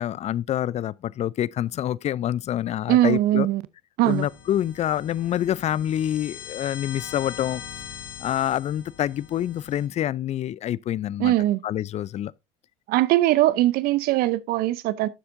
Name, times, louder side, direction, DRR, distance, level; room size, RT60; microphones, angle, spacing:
voice 1, 0.0-3.5 4.0-7.6 8.2-11.3 11.6-12.3, left 11 dB, 40° left, 0.4 m, -27 dB
voice 2, 2.9-3.6 4.0-4.3 11.2-11.6 12.9-15.1, right 15 dB, 60° right, 0.7 m, -21 dB
sound 1, 4.0-9.9, left 8 dB, 70° left, 3.0 m, -41 dB
11.5 x 7.7 x 2.6 m
hypercardioid pair, 75°, 18 cm